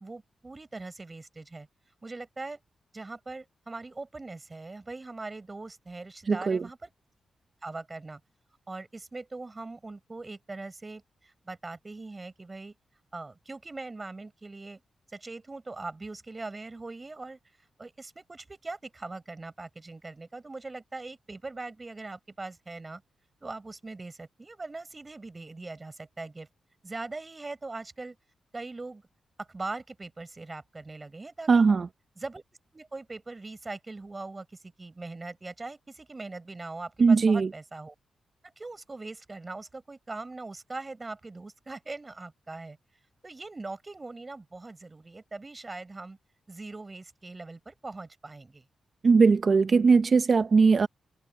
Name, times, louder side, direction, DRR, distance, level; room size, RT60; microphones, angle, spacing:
voice 1, 0.0-1.7 2.0-2.6 2.9-6.9 7.6-8.2 8.7-12.7 13.1-14.8 15.1-17.4 17.8-23.0 23.4-26.5 26.8-28.2 28.5-29.0 29.4-31.6 32.2-32.4 32.7-37.9 38.6-42.8 43.2-46.2 46.5-48.6, right 3 dB, 25° right, 5.0 m, -41 dB
voice 2, 6.3-6.7 31.5-31.9 37.0-37.5 49.0-50.9, right 4 dB, 45° right, 0.7 m, -20 dB
cardioid pair, 105°, 0 cm